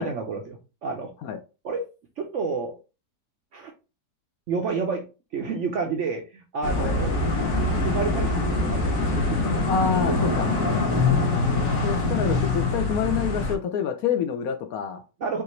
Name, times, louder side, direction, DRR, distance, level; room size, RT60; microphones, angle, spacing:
voice 1, 0.0-1.1 1.6-1.9 2.2-2.8 3.5-3.7 4.5-5.1 5.3-7.1 7.8-9.6 15.2-15.4, right 4 dB, 65° right, 0.7 m, -30 dB
sound 1, 6.6-13.6, left 2 dB, 55° left, 1.5 m, -24 dB
voice 2, 9.7-10.5 11.8-15.0, left 7 dB, 70° left, 0.9 m, -27 dB
5.7 x 2.6 x 3.0 m
omnidirectional pair, 1.8 m